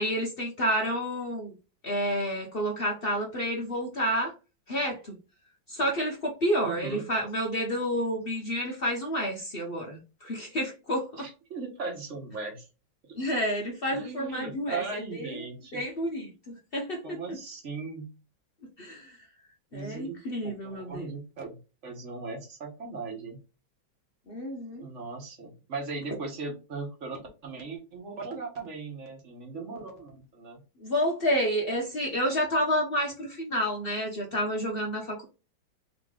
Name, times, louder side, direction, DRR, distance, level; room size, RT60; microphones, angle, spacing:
voice 1, 0.0-1.5 1.8-4.3 4.7-5.2 5.7-11.3 13.1-14.8 15.1-15.3 15.7-17.4 18.8-19.2 19.7-21.1 24.3-24.9 30.8-35.2, equal, 55° left, 1 dB, 0.6 m, -29 dB
voice 2, 6.6-7.0 11.2-12.7 13.0-13.2 13.9-15.8 17.0-18.1 19.7-23.4 24.8-30.6, right 4 dB, 45° right, 2 dB, 1.3 m, -38 dB
3.7 x 3.0 x 3.6 m, 0.31 s
omnidirectional pair, 2.1 m